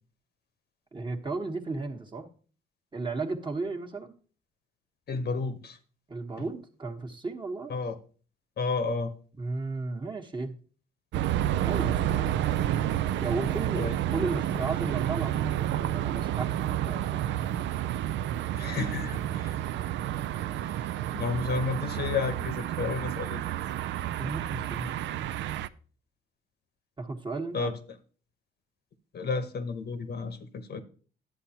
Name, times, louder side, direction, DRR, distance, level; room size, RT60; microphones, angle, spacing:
voice 1, 0.9-2.3 2.9-4.2 6.1-7.7 9.3-10.6 11.6-12.3 13.2-17.7 24.2-24.9 27.0-27.7, right 3 dB, 25° right, 4 dB, 1.3 m, -35 dB
voice 2, 5.1-5.8 7.7-7.9 8.6-9.1 13.7-13.9 18.5-19.6 20.7-20.8 21.1-23.5 27.5-27.7 29.1-30.8, left 4 dB, 55° left, 9 dB, 1.0 m, -31 dB
sound 1, 11.1-25.7, right 12 dB, 70° right, 0.4 m, -30 dB
10.5 x 7.7 x 2.9 m, 0.41 s
supercardioid pair, 65°, 20 cm